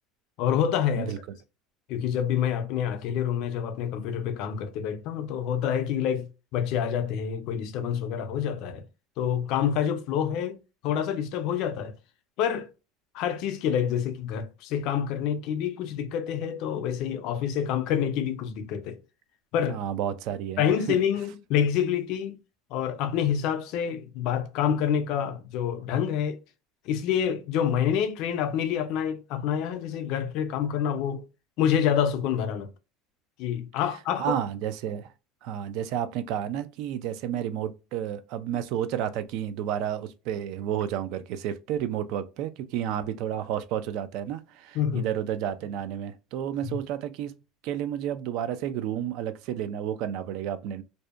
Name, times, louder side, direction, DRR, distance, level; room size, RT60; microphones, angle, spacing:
voice 1, 0.4-1.1 1.9-8.8 9.2-10.6 10.8-11.9 12.4-12.7 13.1-19.0 19.5-19.8 20.6-22.4 22.7-26.4 26.9-31.2 31.6-32.7 33.4-34.4 44.7-45.1 46.6-46.8, left 9 dB, 55° left, 0.4 m, -27 dB
voice 2, 19.7-21.0 34.2-35.1 35.4-47.3 47.6-50.8, right 10 dB, 60° right, 0.3 m, -31 dB
2.6 x 2.1 x 2.3 m
cardioid pair, 150°, 0 cm